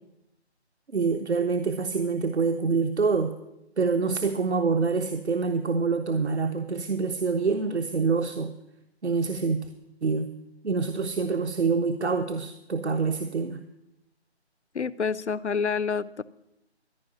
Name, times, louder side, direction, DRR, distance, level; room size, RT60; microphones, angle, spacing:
voice 1, 0.9-3.3 3.8-8.5 9.0-9.6 10.0-10.3 10.6-13.6, right 4 dB, 75° right, 7 dB, 1.0 m, -26 dB
voice 2, 14.7-16.2, left 5 dB, 90° left, 15 dB, 0.7 m, -28 dB
14.0 x 5.5 x 9.3 m, 0.85 s
figure-of-eight pair, 160°, 33 cm